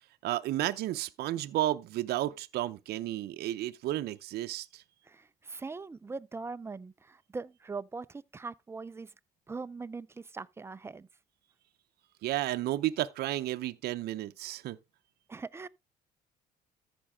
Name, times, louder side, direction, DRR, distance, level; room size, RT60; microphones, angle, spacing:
voice 1, 0.2-4.8 12.2-14.8, right 14 dB, 70° right, 0.6 m, -32 dB
voice 2, 5.1-9.1 9.5-11.1 15.3-15.7, right 4 dB, 15° right, 0.4 m, -41 dB
13.5 x 5.2 x 3.5 m
cardioid pair, 110°, 17 cm